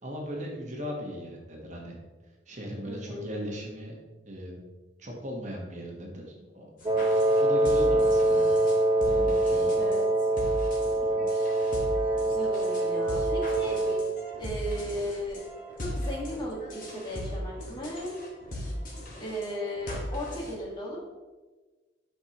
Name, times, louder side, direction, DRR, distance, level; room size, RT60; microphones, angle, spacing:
voice 1, 0.0-1.9 2.5-3.9 4.3-4.6 5.0-6.8 7.4-8.4 9.0-9.8, equal, 40° right, -1 dB, 1.2 m, -38 dB
voice 2, 2.8-3.3 9.8-10.1 12.2-13.8 14.4-15.4 15.8-18.1 19.2-21.0, right 1 dB, 25° left, -3 dB, 1.6 m, -35 dB
sound 1, 6.8-20.6, equal, 50° left, 1.7 m, -38 dB
Wind instrument woodwind instrument, 6.8-14.2, right 1 dB, 25° right, 0.6 m, -24 dB
7.7 x 5.7 x 2.9 m, 1.3 s
head